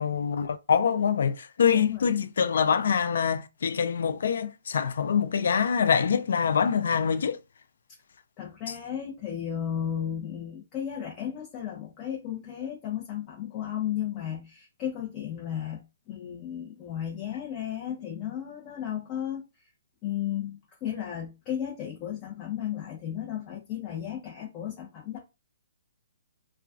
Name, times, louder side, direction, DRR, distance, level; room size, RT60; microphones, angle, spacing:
voice 1, 0.0-7.4, left 7 dB, 70° left, 0.4 m, -25 dB
voice 2, 1.7-2.2 8.4-15.8 16.1-19.7 20.0-25.2, left 10 dB, 30° left, 0.7 m, -34 dB
2.3 x 2.2 x 2.4 m
hypercardioid pair, 140°, 0 cm